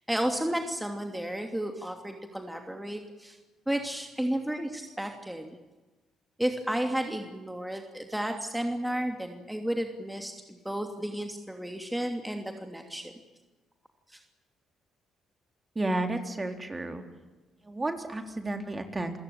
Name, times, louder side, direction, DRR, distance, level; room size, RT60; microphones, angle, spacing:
voice 1, 0.1-3.4 3.7-5.6 6.4-13.1 14.1-14.2, right 1 dB, 5° right, 4 dB, 2.9 m, -32 dB
voice 2, 15.8-17.0 17.6-19.2, right 2 dB, 25° right, 5 dB, 3.7 m, -32 dB
28.5 x 16.5 x 8.9 m, 1.2 s
supercardioid pair, 55°, 0 cm